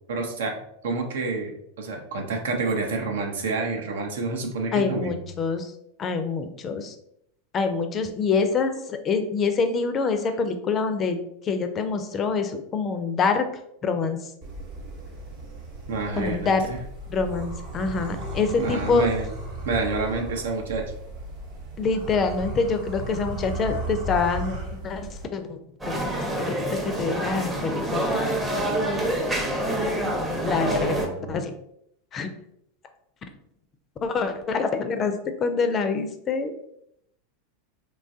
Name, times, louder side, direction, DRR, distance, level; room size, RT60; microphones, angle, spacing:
voice 1, 0.1-0.6 0.8-5.2 15.9-16.8 18.6-19.3 19.6-20.9 30.6-31.4, right 3 dB, 75° right, 3 dB, 0.6 m, -28 dB
voice 2, 4.7-5.7 6.0-6.9 7.5-11.2 11.4-13.5 13.8-14.2 16.2-16.7 17.1-19.1 21.8-25.6 25.9-26.1 26.5-28.6 30.4-31.0 31.3-31.5 32.1-32.3 34.0-35.1 35.4-36.5, left 4 dB, 30° left, 8 dB, 0.4 m, -26 dB
sound 1, 14.4-25.2, right 1 dB, 55° right, 0.9 m, -35 dB
sound 2, 25.8-31.1, right 1 dB, 15° right, 0.7 m, -27 dB
3.1 x 2.3 x 2.6 m, 0.75 s
hypercardioid pair, 95°, 0 cm